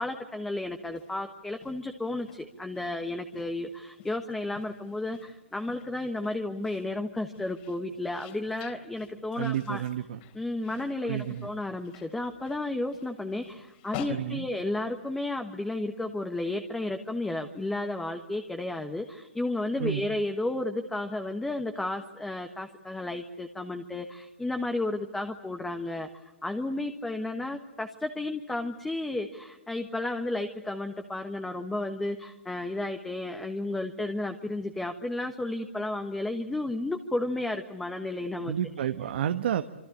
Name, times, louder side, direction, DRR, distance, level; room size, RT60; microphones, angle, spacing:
voice 1, 0.0-9.8 10.3-26.1 26.4-38.5 38.8-38.9, left 2 dB, 5° left, 6 dB, 1.3 m, -33 dB
sound 1, 0.9-15.3, left 8 dB, 40° left, 3.6 m, -49 dB
voice 2, 9.4-10.2 11.0-11.5 14.1-14.5 19.8-20.1 38.4-39.6, right 10 dB, 60° right, 9 dB, 1.2 m, -30 dB
27.0 x 24.5 x 8.6 m, 1.0 s
hypercardioid pair, 140°, 6 cm